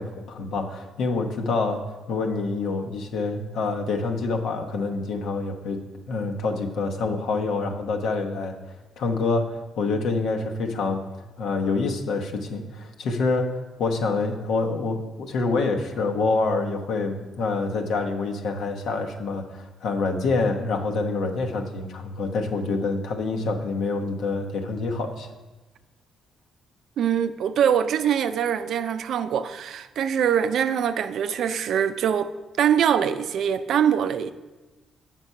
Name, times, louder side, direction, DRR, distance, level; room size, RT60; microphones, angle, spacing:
voice 1, 0.0-8.6 9.0-11.0 11.4-25.3, left 3 dB, 80° left, 1.0 m, -26 dB
voice 2, 27.0-34.3, right 8 dB, 70° right, 0.4 m, -23 dB
7.2 x 5.9 x 5.5 m
cardioid pair, 90°, 0 cm